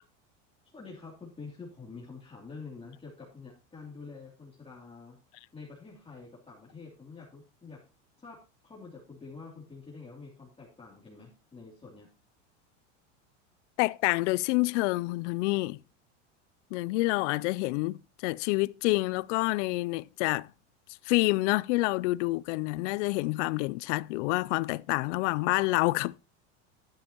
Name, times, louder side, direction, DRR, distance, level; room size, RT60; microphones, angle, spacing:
voice 1, 0.7-5.2 5.5-7.8 8.2-12.1, left 4 dB, 15° left, 2.8 m, -47 dB
voice 2, 13.8-15.8 16.7-20.5 21.1-26.2, left 22 dB, 70° left, 0.5 m, -28 dB
11.5 x 9.9 x 2.9 m
supercardioid pair, 115°, 37 cm